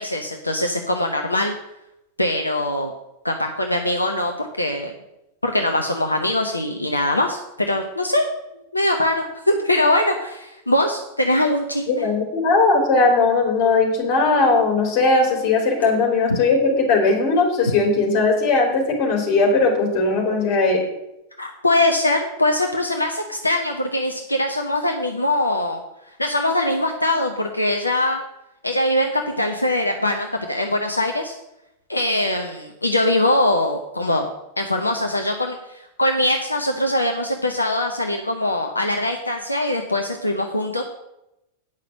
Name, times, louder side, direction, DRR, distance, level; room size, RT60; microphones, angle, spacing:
voice 1, 0.0-1.5 2.2-2.9 3.2-4.9 5.4-8.3 8.7-12.0 15.8-15.9 21.4-25.8 26.2-28.2 28.6-31.4 31.9-34.3 34.6-40.8, left 1 dB, 85° left, 3 dB, 0.8 m, -22 dB
voice 2, 11.9-20.8, left 3 dB, 45° left, 2 dB, 3.3 m, -18 dB
9.0 x 5.8 x 7.5 m, 0.89 s
figure-of-eight pair, 90°, 0 cm